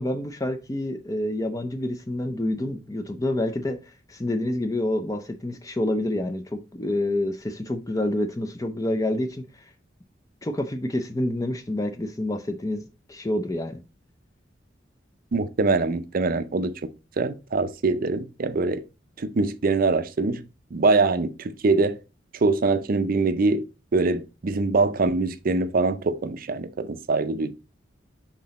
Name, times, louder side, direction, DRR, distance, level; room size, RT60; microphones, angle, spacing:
voice 1, 0.0-9.6 10.4-12.8 13.1-13.8, left 1 dB, 20° left, 0.5 m, -28 dB
voice 2, 15.3-16.9 17.2-18.8 19.2-20.4 20.7-22.0 22.4-23.7 23.9-27.5, right 3 dB, 50° right, 0.5 m, -23 dB
5.9 x 3.8 x 4.1 m
head